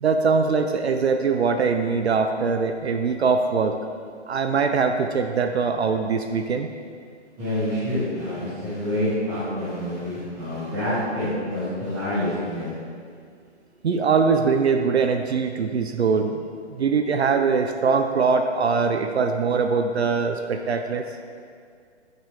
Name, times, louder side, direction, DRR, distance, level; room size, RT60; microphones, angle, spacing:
voice 1, 0.0-3.8 4.3-6.7 13.8-16.4 16.7-21.0, right 5 dB, 65° right, 7 dB, 0.5 m, -22 dB
voice 2, 7.4-12.7, left 1 dB, 5° right, -12 dB, 1.1 m, -27 dB
8.2 x 6.5 x 3.4 m, 2.1 s
hypercardioid pair, 175°, 35 cm